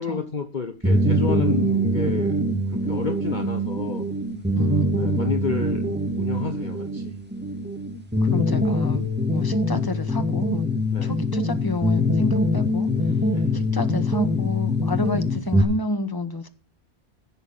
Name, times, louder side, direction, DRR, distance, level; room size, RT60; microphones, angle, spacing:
voice 1, 0.0-2.3 2.7-4.1 4.9-5.8 6.2-7.1 10.9-11.1 13.3-13.5, left 5 dB, 45° left, 1.1 m, -30 dB
sound 1, 0.8-15.6, left 1 dB, 10° right, 2.0 m, -23 dB
voice 2, 4.5-5.3 8.2-10.7 11.0-12.9 13.5-16.5, left 2 dB, 20° left, 1.4 m, -30 dB
15.5 x 7.1 x 5.6 m
omnidirectional pair, 1.2 m